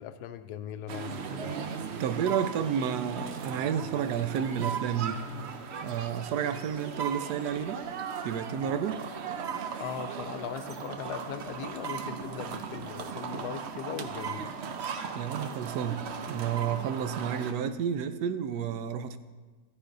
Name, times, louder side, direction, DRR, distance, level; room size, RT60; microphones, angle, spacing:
voice 1, 0.0-1.5 9.8-14.5, left 9 dB, 80° left, 10 dB, 1.1 m, -39 dB
sound 1, 0.9-17.5, right 6 dB, 60° right, 0.7 m, -37 dB
voice 2, 2.0-5.3 5.8-7.8 8.2-9.0 15.1-19.2, right 8 dB, 80° right, 10 dB, 1.1 m, -31 dB
13.0 x 9.9 x 2.6 m, 1.3 s
omnidirectional pair, 1.7 m